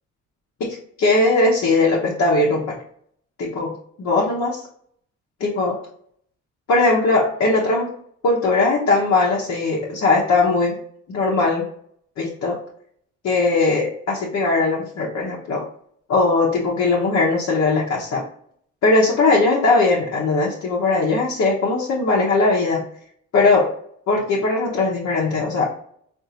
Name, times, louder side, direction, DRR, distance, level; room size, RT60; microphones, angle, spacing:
voice 1, 0.6-2.8 3.4-3.7 4.0-4.6 5.4-5.8 6.7-7.9 8.2-10.8 11.1-11.7 12.2-12.6 13.2-15.6 16.1-18.2 18.8-22.8 23.3-23.7 24.1-25.7, left 3 dB, 60° left, -4 dB, 0.9 m, -19 dB
3.7 x 2.6 x 2.8 m, 0.63 s
cardioid pair, 90°, 30 cm